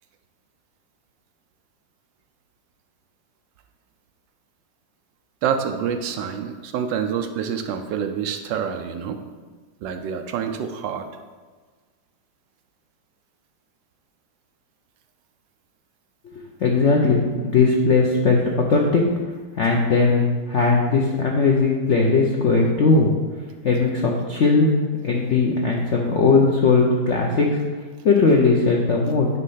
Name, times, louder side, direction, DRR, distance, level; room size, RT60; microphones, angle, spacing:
voice 1, 5.4-9.2 9.8-11.1, right 7 dB, 75° right, 7 dB, 1.2 m, -27 dB
voice 2, 16.6-19.0 19.6-23.1 23.6-27.6 28.0-29.3, left 4 dB, 70° left, -1 dB, 0.7 m, -19 dB
9.6 x 3.2 x 5.6 m, 1.4 s
omnidirectional pair, 2.1 m